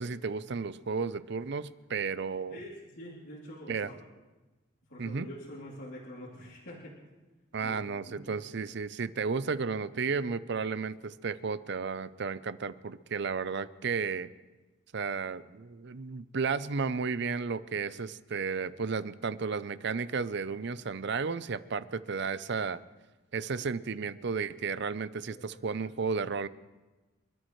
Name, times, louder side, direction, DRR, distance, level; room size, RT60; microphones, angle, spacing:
voice 1, 0.0-2.6 3.7-3.9 5.0-5.3 7.5-14.3 14.9-22.8 23.3-26.5, right 5 dB, 55° right, 15 dB, 0.5 m, -33 dB
voice 2, 2.5-3.9 4.9-6.9 7.6-8.3 25.3-25.4 25.8-25.9, equal, 60° left, -8 dB, 3.1 m, -46 dB
29.5 x 13.0 x 3.2 m, 1.2 s
head